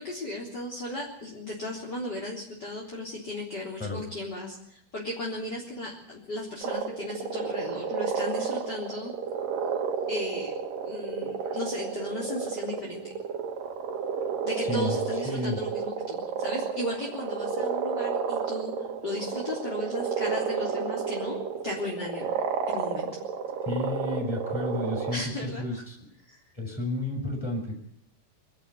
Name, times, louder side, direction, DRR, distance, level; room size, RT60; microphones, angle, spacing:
voice 1, 0.0-9.1 10.1-10.5 10.8-13.0 14.4-21.4 21.6-22.4 22.7-23.2 25.1-25.8 26.3-26.4, left 1 dB, 30° left, -3 dB, 4.0 m, -36 dB
sound 1, 6.6-25.2, right 6 dB, 75° right, 3.6 m, -31 dB
voice 2, 14.6-15.6 23.6-26.1 26.5-27.8, left 1 dB, 5° left, 2 dB, 6.1 m, -32 dB
24.0 x 13.5 x 9.8 m, 0.70 s
omnidirectional pair, 4.1 m